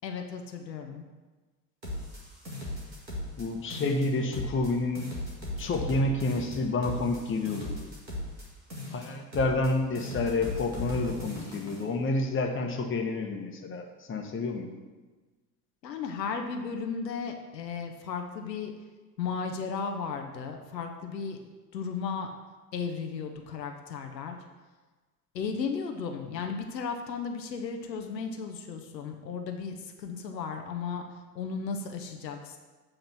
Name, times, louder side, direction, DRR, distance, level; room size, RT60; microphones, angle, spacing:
voice 1, 0.0-1.1 15.8-18.7 19.2-21.4 21.7-22.3 22.7-24.4 25.3-31.1 31.3-32.6, left 5 dB, 80° left, 4 dB, 0.7 m, -35 dB
sound 1, 1.8-3.5 3.7-4.7 5.0-8.5 8.7-9.7 10.0-11.8, left 1 dB, 85° right, 1.6 m, -37 dB
voice 2, 3.4-5.1 5.6-7.7 8.9-14.7, left 2 dB, 25° left, 3 dB, 1.1 m, -29 dB
7.8 x 3.8 x 6.0 m, 1.3 s
figure-of-eight pair, 65°, 50 cm